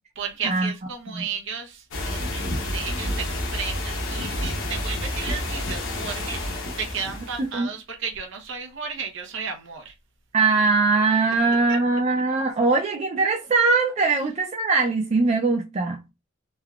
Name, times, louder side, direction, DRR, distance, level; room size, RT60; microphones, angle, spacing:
voice 1, 0.2-9.9 11.7-11.8, right 6 dB, 60° right, 0.8 m, -34 dB
sound 1, 1.9-7.5, left 1 dB, 65° left, 0.8 m, -29 dB
voice 2, 10.3-16.0, right 3 dB, 35° right, 0.4 m, -21 dB
3.4 x 2.3 x 2.3 m
head